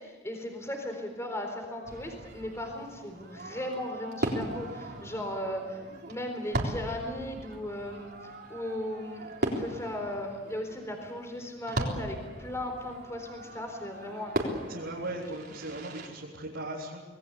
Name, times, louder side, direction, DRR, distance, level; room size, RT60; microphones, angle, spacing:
voice 1, 0.0-5.8 6.1-14.6, left 1 dB, 15° left, 4 dB, 4.1 m, -37 dB
Fireworks, 1.8-16.1, right 1 dB, 50° right, 3.9 m, -38 dB
voice 2, 14.7-17.0, right 1 dB, 70° right, -5 dB, 3.9 m, -38 dB
26.5 x 20.0 x 8.3 m, 1.3 s
head